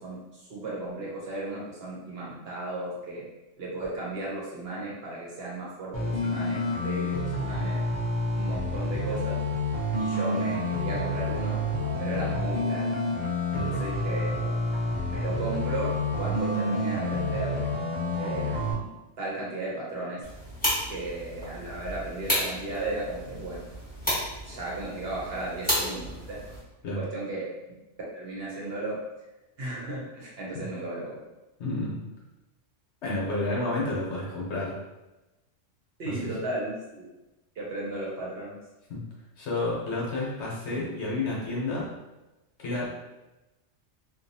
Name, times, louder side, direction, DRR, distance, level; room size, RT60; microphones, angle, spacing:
voice 1, 0.0-3.3 3.6-7.8 8.3-9.4 10.0-11.6 12.0-12.9 13.5-14.6 15.1-17.6 18.2-20.2 20.9-23.6 24.4-26.4 26.9-27.5 28.1-29.0 29.6-31.2 36.0-37.1 37.6-38.6, right 2 dB, 60° right, -5 dB, 0.8 m, -35 dB
sound 1, 5.9-18.7, left 1 dB, 35° left, 0.5 m, -29 dB
sound 2, 20.2-26.6, equal, 10° left, 1.0 m, -32 dB
voice 2, 31.6-32.0 33.0-34.8 36.0-36.4 38.9-39.0 39.4-41.9 42.6-43.0, left 2 dB, 65° left, -5 dB, 1.0 m, -30 dB
2.7 x 2.3 x 2.7 m, 1.0 s
omnidirectional pair, 1.3 m